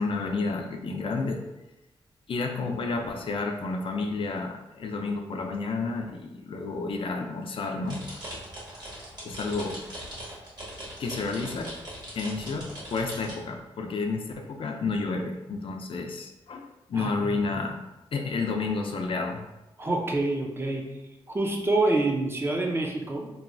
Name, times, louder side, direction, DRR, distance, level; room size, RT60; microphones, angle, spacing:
voice 1, 0.0-1.4 2.3-8.0 9.2-9.8 11.0-11.7 12.1-17.8 18.1-19.4, left 3 dB, 60° left, 3 dB, 0.4 m, -30 dB
sound 1, 7.9-13.3, right 1 dB, 45° right, 1.5 m, -40 dB
voice 2, 16.9-17.3 19.8-20.9 21.3-23.3, right 2 dB, 25° right, 1 dB, 0.5 m, -27 dB
3.0 x 2.2 x 2.5 m, 0.98 s
cardioid pair, 60°, 10 cm